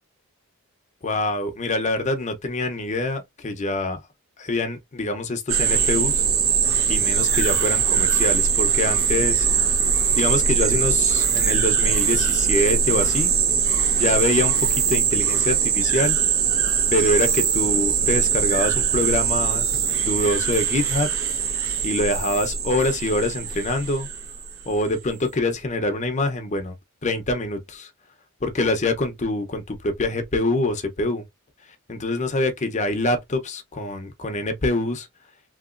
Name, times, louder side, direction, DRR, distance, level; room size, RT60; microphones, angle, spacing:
voice 1, 1.0-4.0 4.4-6.3 6.9-9.5 10.1-13.3 13.9-16.2 16.9-21.1 21.8-24.1 24.7-26.7 27.0-27.9 28.4-31.2 31.9-35.1, left 2 dB, 35° left, 0.6 m, -25 dB
sound 1, 5.5-24.6, right 7 dB, 70° right, 0.9 m, -21 dB
2.9 x 2.9 x 2.4 m
head